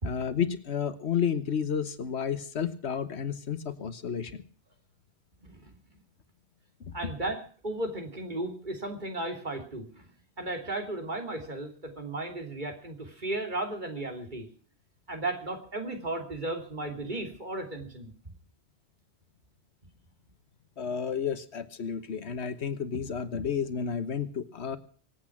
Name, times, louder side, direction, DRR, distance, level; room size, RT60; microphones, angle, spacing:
voice 1, 0.0-4.4 6.8-7.1 20.8-24.8, left 7 dB, 90° left, 13 dB, 1.5 m, -31 dB
voice 2, 5.4-6.0 6.9-10.1 10.4-14.5 15.1-18.3, right 2 dB, 45° right, 4 dB, 3.2 m, -35 dB
24.0 x 8.6 x 6.0 m, 0.43 s
omnidirectional pair, 1.1 m